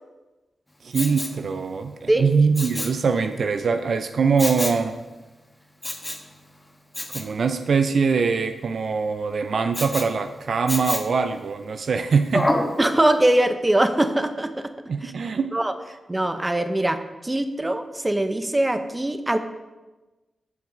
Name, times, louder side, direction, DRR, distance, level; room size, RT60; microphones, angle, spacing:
voice 1, 0.8-5.0 7.1-12.5 14.9-15.6, right 5 dB, 70° right, 8 dB, 0.5 m, -23 dB
Respiratory sounds, 0.9-1.4 2.5-3.0 4.4-4.8 5.8-6.3 6.9-7.3 9.7-10.1 10.7-11.2 12.3-12.7 13.2-13.3, left 1 dB, 15° left, 1.4 m, -27 dB
voice 2, 12.8-14.7 15.0-15.1 15.5-15.7 16.1-19.4, right 1 dB, 20° right, 9 dB, 0.9 m, -22 dB
14.5 x 6.0 x 3.9 m, 1.1 s
cardioid pair, 55°, 0 cm